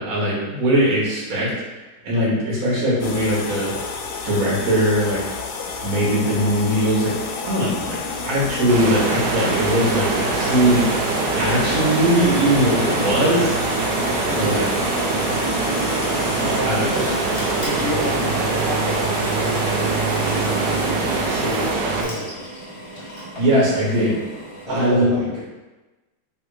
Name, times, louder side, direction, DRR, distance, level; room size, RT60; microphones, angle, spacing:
voice 1, 0.0-1.5 2.0-3.7 4.2-5.2 5.8-7.2 7.4-10.9 11.3-13.6 14.3-14.6 16.6-16.8 23.4-24.2 24.7-25.1, right 1 dB, 50° right, -6 dB, 1.5 m, -20 dB
sound 1, 3.0-21.8, left 5 dB, 70° left, 1.0 m, -32 dB
Drill, 6.2-24.7, equal, 25° left, 0.7 m, -36 dB
sound 2, 8.7-22.0, right 3 dB, 70° right, 1.2 m, -23 dB
voice 2, 14.3-14.8 16.0-22.4 24.7-25.4, right 1 dB, 45° left, -8 dB, 0.4 m, -30 dB
3.5 x 3.1 x 4.7 m, 1.1 s
omnidirectional pair, 2.1 m